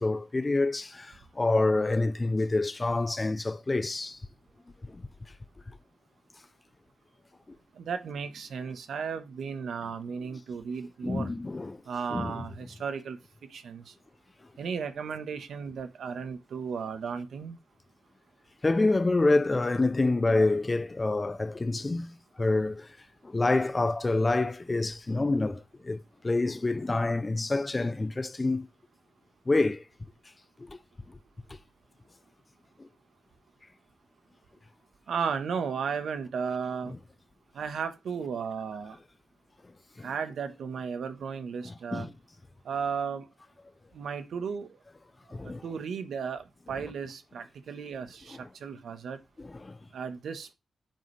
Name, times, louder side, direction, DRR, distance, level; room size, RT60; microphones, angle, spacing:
voice 1, 0.0-4.2 4.9-5.0 11.0-11.8 12.1-12.4 18.6-22.9 23.2-28.7 29.5-29.8 30.7-30.8 40.0-40.1 41.6-42.1 45.3-45.6 49.4-49.8, left 2 dB, 20° left, 0.6 m, -27 dB
voice 2, 7.8-11.3 11.9-13.2 13.5-13.9 14.6-17.6 35.1-36.9 37.5-39.0 40.0-42.1 42.6-43.3 43.9-44.7 45.3-49.2 49.9-50.5, right 6 dB, 75° right, 1.3 m, -35 dB
9.0 x 7.9 x 3.3 m
wide cardioid pair, 150°, 0 cm